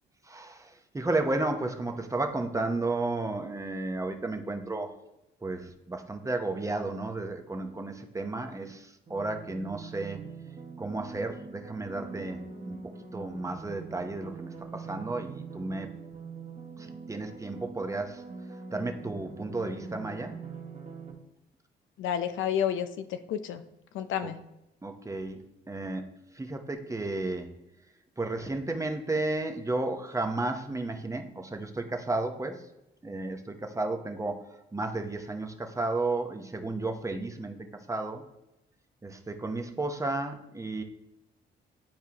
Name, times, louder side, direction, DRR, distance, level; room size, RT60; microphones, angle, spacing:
voice 1, 0.3-4.9 5.4-10.2 10.8-12.8 13.1-15.9 16.8-18.2 18.7-20.4 24.2-24.3 24.8-25.4 25.7-26.1 26.3-27.5 28.2-32.6 33.0-34.4 34.7-38.2 39.0-40.8, right 2 dB, 15° right, 5 dB, 0.8 m, -33 dB
sound 1, 9.1-21.1, right 4 dB, 30° right, 1.4 m, -43 dB
voice 2, 22.0-23.6 23.9-24.4, left 9 dB, 80° left, 10 dB, 0.5 m, -30 dB
10.5 x 4.6 x 2.9 m, 0.91 s
cardioid pair, 90°, 20 cm